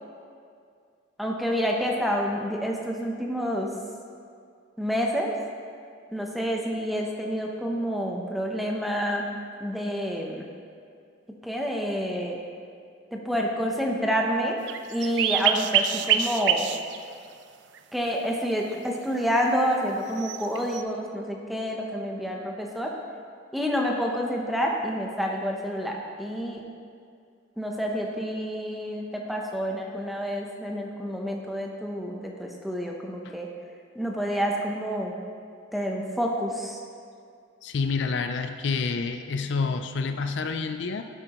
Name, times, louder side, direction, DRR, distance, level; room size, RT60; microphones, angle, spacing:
voice 1, 1.2-3.7 4.8-5.4 6.1-9.2 9.6-10.4 11.4-12.4 13.1-14.6 14.9-16.7 17.9-22.9 23.5-26.6 27.6-33.5 33.9-35.1 35.7-36.8, equal, ahead, -1 dB, 0.7 m, -28 dB
sound 1, 14.7-17.1 17.8-17.9 20.2-20.8, right 8 dB, 65° right, 0.4 m, -25 dB
voice 2, 37.6-41.0, left 4 dB, 65° left, 8 dB, 0.4 m, -28 dB
11.0 x 8.1 x 3.0 m, 2.3 s
head